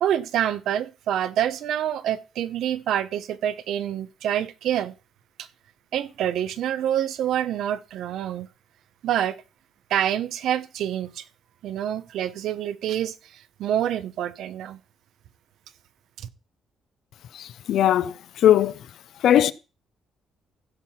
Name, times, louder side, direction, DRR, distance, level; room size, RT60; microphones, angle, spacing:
voice 1, 0.0-4.9 5.4-5.5 5.9-8.5 9.0-9.4 9.9-11.2 11.6-14.8 16.2-16.3, right 10 dB, 80° right, 0.9 m, -27 dB
voice 2, 17.3-18.7 19.2-19.5, left 11 dB, 75° left, 0.6 m, -19 dB
15.5 x 5.8 x 4.3 m
cardioid pair, 90°, 0 cm